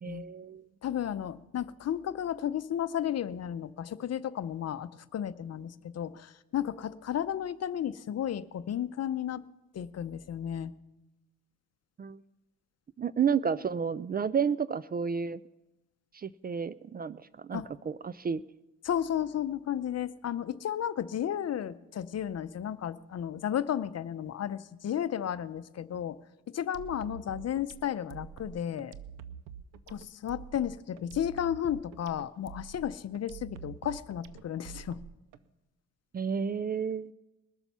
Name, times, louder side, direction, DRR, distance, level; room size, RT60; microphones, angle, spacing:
voice 1, 0.0-0.7 12.0-12.2 13.0-15.4 16.1-18.4 36.1-37.1, right 6 dB, 30° right, 18 dB, 0.4 m, -31 dB
voice 2, 0.8-9.4 9.7-10.7 17.5-17.7 18.8-26.2 26.5-29.0 29.9-35.0, left 10 dB, 50° left, 14 dB, 0.7 m, -33 dB
sound 1, 26.7-35.4, right 8 dB, 90° right, 0.6 m, -46 dB
21.5 x 7.1 x 5.6 m, 1.0 s
supercardioid pair, 65°, 32 cm